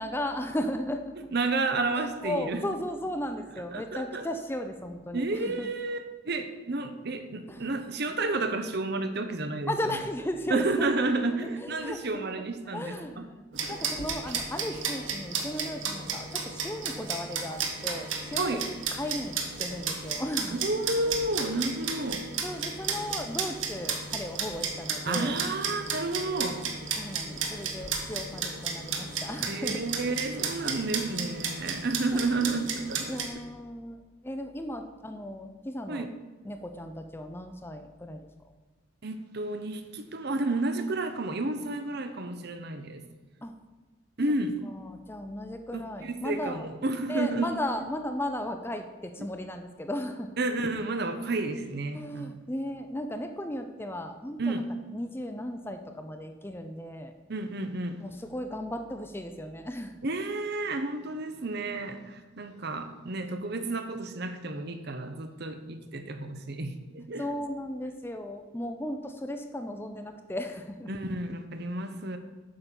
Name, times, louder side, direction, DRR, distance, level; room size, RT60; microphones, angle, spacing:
voice 1, 0.0-1.1 2.0-5.7 7.5-7.7 9.7-11.1 11.6-12.0 12.7-18.6 18.9-20.6 22.4-25.3 27.0-29.9 32.1-32.8 33.1-34.0 34.2-36.1 36.4-38.3 43.4-43.5 44.7-46.7 47.1-50.4 51.9-54.6 54.9-57.1 58.0-60.0 67.2-70.9, left 1 dB, 10° left, 6 dB, 0.5 m, -36 dB
voice 2, 1.3-2.6 3.7-4.3 5.1-10.0 10.5-13.3 13.5-13.8 18.4-18.6 20.5-22.3 25.0-26.7 29.5-33.2 35.9-36.1 39.0-43.0 44.2-44.6 45.7-47.5 50.4-52.3 54.4-54.7 57.3-58.0 60.0-67.2 70.9-72.2, right 2 dB, 50° right, 8 dB, 0.8 m, -31 dB
sound 1, 13.5-33.3, right 5 dB, 70° right, 1.4 m, -34 dB
8.8 x 5.8 x 6.9 m, 1.3 s
head